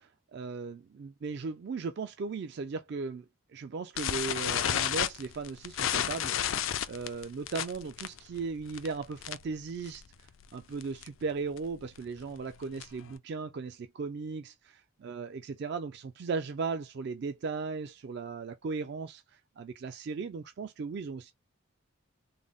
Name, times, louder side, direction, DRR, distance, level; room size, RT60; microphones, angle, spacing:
voice 1, 0.0-6.6 6.9-21.3, right 4 dB, 50° right, 0.3 m, -37 dB
sound 1, 4.0-9.6 9.9-10.1 10.4-10.5 10.8-11.1 11.6-13.1, left 10 dB, 70° left, 0.4 m, -32 dB
3.7 x 2.0 x 3.5 m
head